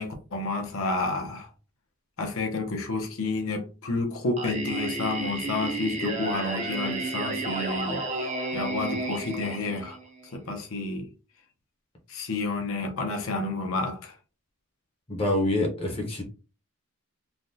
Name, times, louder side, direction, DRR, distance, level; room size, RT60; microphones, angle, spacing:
voice 1, 0.0-1.5 2.2-10.0 10.3-11.1 12.1-14.2, left 3 dB, 70° left, 0.7 m, -30 dB
Singing, 4.4-10.3, right 3 dB, 30° right, 0.6 m, -32 dB
voice 2, 15.1-16.2, left 1 dB, 25° left, 0.7 m, -26 dB
3.4 x 2.2 x 2.6 m
head